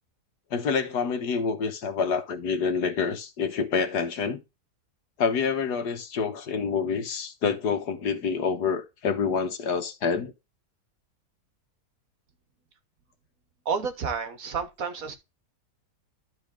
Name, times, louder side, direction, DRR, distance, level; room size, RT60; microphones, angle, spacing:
voice 1, 0.5-4.4 5.2-10.3, left 5 dB, 80° left, 1.9 m, -27 dB
voice 2, 13.6-15.2, right 6 dB, 60° right, 1.7 m, -30 dB
12.5 x 4.3 x 3.6 m
omnidirectional pair, 1.7 m